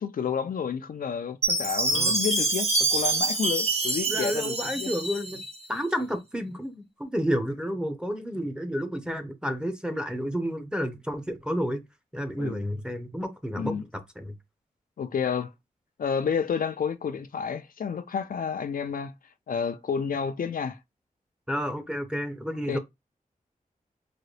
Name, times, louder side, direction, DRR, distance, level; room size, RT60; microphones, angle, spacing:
voice 1, 0.0-4.9 12.4-12.6 13.6-13.8 15.0-15.5 16.0-19.1 19.5-20.8 22.7-22.8, left 6 dB, 70° left, 0.5 m, -30 dB
Chime, 1.4-5.6, right 2 dB, 45° right, 1.1 m, -26 dB
voice 2, 4.1-5.4 5.7-11.8 12.1-14.3 21.5-22.8, equal, 5° right, 0.9 m, -31 dB
3.9 x 2.2 x 3.2 m
cardioid pair, 65°, 15 cm